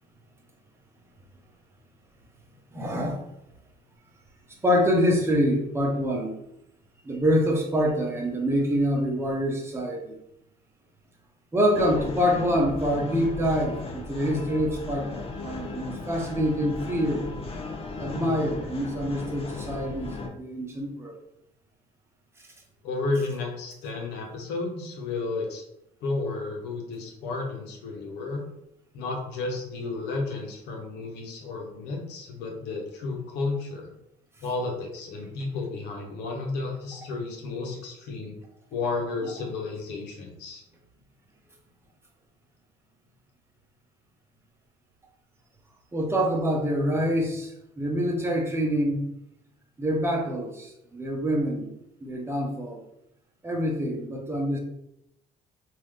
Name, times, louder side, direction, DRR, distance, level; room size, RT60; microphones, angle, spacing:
voice 1, 2.7-3.2 4.6-6.4 7.0-10.2 11.5-17.3 18.0-21.2 39.2-39.3 45.9-49.1 49.8-51.7 52.0-52.8 53.4-54.6, equal, 15° right, 0 dB, 0.9 m, -26 dB
sound 1, 11.7-20.3, left 3 dB, 35° left, 0.6 m, -36 dB
voice 2, 22.8-25.6 26.0-28.4 28.9-33.9 34.4-38.4 38.7-40.6, left 3 dB, 85° left, 1 dB, 1.0 m, -32 dB
3.7 x 2.7 x 3.2 m, 0.80 s
cardioid pair, 110°, 17 cm